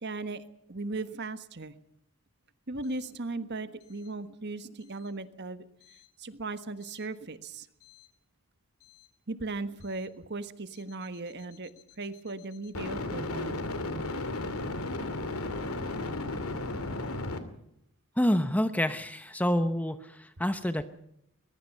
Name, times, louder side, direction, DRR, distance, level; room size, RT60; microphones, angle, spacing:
voice 1, 0.0-0.4 0.7-1.7 2.7-5.6 6.2-7.7 9.3-11.7 12.0-13.6, right 3 dB, 50° right, 11 dB, 1.4 m, -37 dB
sound 1, 7.9-8.0 12.7-17.4, left 2 dB, 75° left, 2.7 m, -34 dB
voice 2, 18.2-20.9, equal, 5° left, 10 dB, 0.9 m, -28 dB
22.0 x 21.5 x 5.5 m, 0.77 s
head